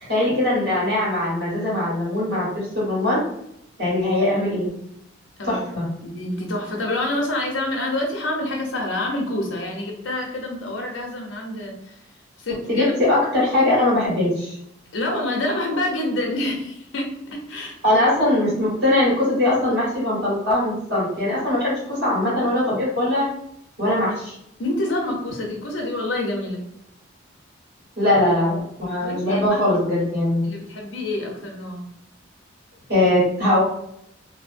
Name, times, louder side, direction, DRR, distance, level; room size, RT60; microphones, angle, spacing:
voice 1, 0.1-2.5 2.7-3.2 3.8-4.7 5.4-5.9 12.7-14.6 17.8-23.2 23.8-24.3 28.0-30.4 32.9-33.6, left 1 dB, 55° right, -7 dB, 1.5 m, -21 dB
voice 2, 6.0-12.0 12.4-12.9 14.9-17.8 24.6-26.6 29.0-29.6 29.9-30.1 30.4-31.8, left 1 dB, 85° left, 0 dB, 0.7 m, -27 dB
2.7 x 2.0 x 2.5 m, 0.77 s
head